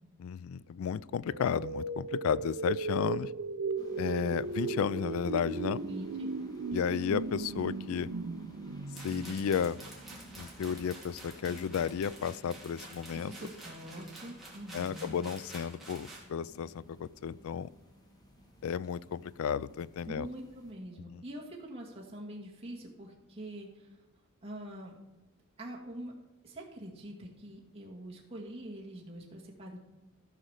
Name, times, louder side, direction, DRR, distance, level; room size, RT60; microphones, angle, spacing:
voice 1, 0.2-3.3 4.0-5.8 6.7-8.1 9.0-9.8 10.4-13.3 14.7-17.7 18.6-20.3 21.1-21.2, left 7 dB, 65° left, 20 dB, 0.3 m, -33 dB
sound 1, 1.3-10.2, right 4 dB, 60° right, 0.5 m, -37 dB
sound 2, 3.8-20.7, equal, 20° left, 1.4 m, -55 dB
voice 2, 5.8-6.3 13.1-15.2 20.0-24.0 24.4-25.0 25.6-26.2 26.4-29.8, right 1 dB, 25° right, -3 dB, 1.8 m, -44 dB
sound 3, 9.0-16.3, right 2 dB, ahead, 2.7 m, -50 dB
14.0 x 5.0 x 6.5 m, 1.1 s
head